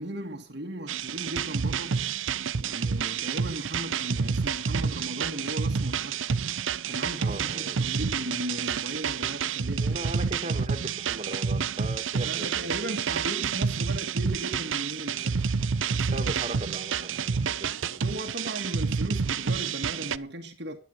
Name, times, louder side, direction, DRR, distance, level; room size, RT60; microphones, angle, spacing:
voice 1, 0.0-2.0 2.6-6.2 6.9-10.0 12.2-15.5 18.0-20.8, right 1 dB, 55° right, 1.9 m, -37 dB
sound 1, 0.9-20.2, right 6 dB, 70° right, 0.6 m, -29 dB
voice 2, 7.2-7.8 9.8-12.8 15.9-18.0, right 1 dB, 30° right, 2.2 m, -38 dB
12.0 x 11.0 x 6.6 m
head